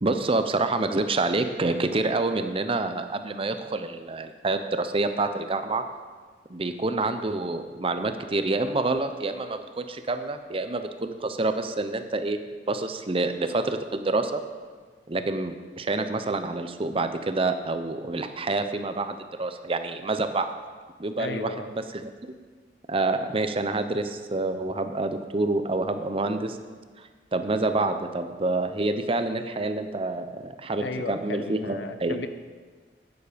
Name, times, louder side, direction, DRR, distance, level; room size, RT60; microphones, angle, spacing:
voice 1, 0.0-5.8 6.5-12.4 12.7-14.4 15.1-20.5 21.0-21.5 21.9-22.1 22.9-26.6 27.0-32.2, right 2 dB, 30° right, 8 dB, 0.7 m, -27 dB
voice 2, 21.2-21.7 30.8-32.3, left 3 dB, 90° left, 10 dB, 0.8 m, -35 dB
11.5 x 9.4 x 5.1 m, 1.5 s
head